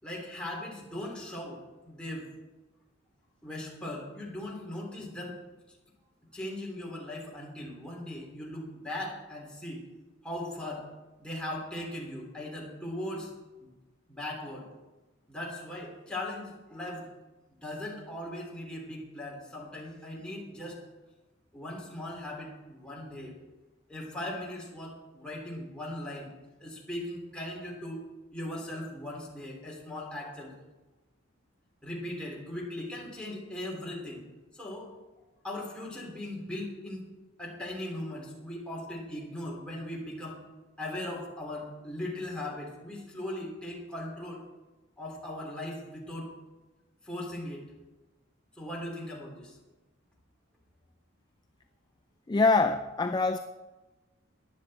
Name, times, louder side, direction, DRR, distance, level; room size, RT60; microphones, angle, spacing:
voice 1, 0.0-2.3 3.4-5.4 6.3-9.9 10.2-10.9 11.2-13.3 13.6-13.7 14.1-14.7 15.3-17.1 17.6-20.8 21.5-23.3 23.9-26.3 26.6-28.0 28.3-30.5 31.8-34.2 34.5-34.9 35.4-37.1 37.4-40.4 40.8-44.4 45.0-46.3 47.0-47.7 48.6-49.6, left 1 dB, 5° left, -4 dB, 3.4 m, -39 dB
voice 2, 52.3-53.4, left 3 dB, 20° left, 7 dB, 0.4 m, -24 dB
15.5 x 10.5 x 4.3 m, 1.2 s
head